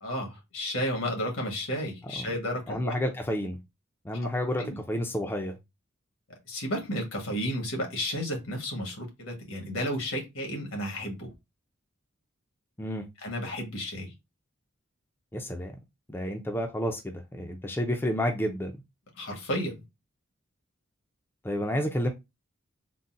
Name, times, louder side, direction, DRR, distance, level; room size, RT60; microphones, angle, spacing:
voice 1, 0.0-2.9 4.6-4.8 6.5-11.3 13.2-14.1 19.2-19.8, equal, 85° left, 1.4 m, -32 dB
voice 2, 2.7-3.6 4.0-5.6 12.8-13.1 15.3-15.7 16.1-18.7 21.4-22.1, equal, 10° left, 0.4 m, -30 dB
3.8 x 2.1 x 2.5 m
head